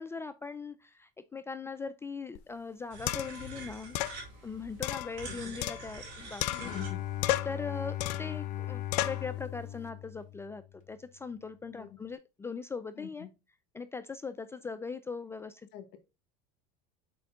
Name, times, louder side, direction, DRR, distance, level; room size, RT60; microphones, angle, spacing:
voice 1, 0.0-4.0 4.4-6.7 7.4-13.3 13.7-15.7, left 4 dB, 15° left, 12 dB, 0.4 m, -40 dB
sound 1, 2.4-2.5 3.1-3.5 4.0-4.2 4.8-6.1 6.4-6.9 7.2-7.6 8.0-8.4 8.9-9.3, left 16 dB, 90° left, 0.5 m, -33 dB
sound 2, 2.9-7.4, right 2 dB, 80° right, 3.9 m, -46 dB
voice 2, 5.2-5.5 6.5-7.0 11.7-12.0 12.9-13.3 15.7-16.0, left 11 dB, 65° left, 9 dB, 1.4 m, -46 dB
Bowed string instrument, 6.6-10.8, left 13 dB, 40° left, 0.8 m, -38 dB
6.8 x 4.5 x 3.6 m, 0.27 s
supercardioid pair, 120°, 20 cm